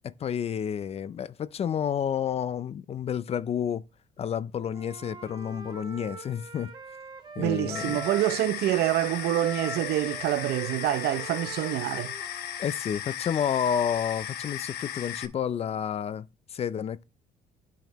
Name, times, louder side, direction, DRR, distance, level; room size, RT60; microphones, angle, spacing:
voice 1, 0.0-3.8 4.2-6.7 7.4-8.0 12.6-16.3 16.5-17.0, left 8 dB, 35° left, 0.4 m, -30 dB
Wind instrument woodwind instrument, 4.7-8.5 8.8-12.6, right 2 dB, 25° right, 1.3 m, -43 dB
voice 2, 7.4-12.1, right 14 dB, 70° right, 0.6 m, -26 dB
sound 1, 7.8-15.3, left 10 dB, 70° left, 1.0 m, -36 dB
10.5 x 5.7 x 3.0 m
cardioid pair, 110°, 17 cm